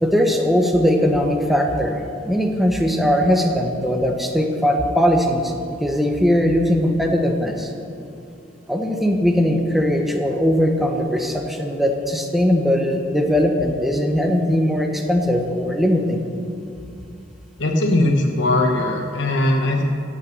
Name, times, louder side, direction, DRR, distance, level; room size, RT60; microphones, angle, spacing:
voice 1, 0.0-2.0 2.2-5.5 5.8-7.7 8.7-16.2, equal, ahead, 2 dB, 1.0 m, -19 dB
voice 2, 17.6-19.8, left 1 dB, 65° left, 2 dB, 1.1 m, -19 dB
15.5 x 6.5 x 7.9 m, 2.6 s
head